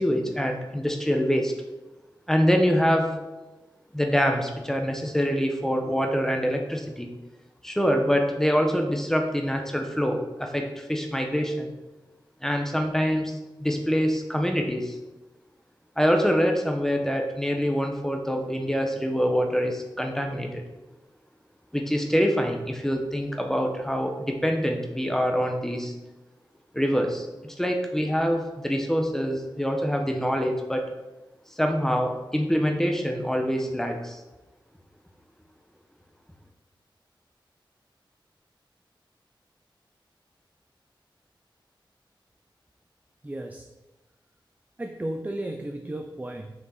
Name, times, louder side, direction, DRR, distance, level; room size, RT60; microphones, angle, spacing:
voice 1, 0.0-1.5 2.3-3.1 3.9-7.1 7.6-11.7 12.4-13.3 13.6-14.9 16.0-20.6 21.7-25.9 26.7-30.9 31.6-34.2, equal, 5° left, 4 dB, 1.0 m, -25 dB
voice 2, 43.2-43.7 44.8-46.5, right 1 dB, 20° right, 5 dB, 0.5 m, -34 dB
7.1 x 6.1 x 4.1 m, 1.1 s
wide cardioid pair, 100°, 9 cm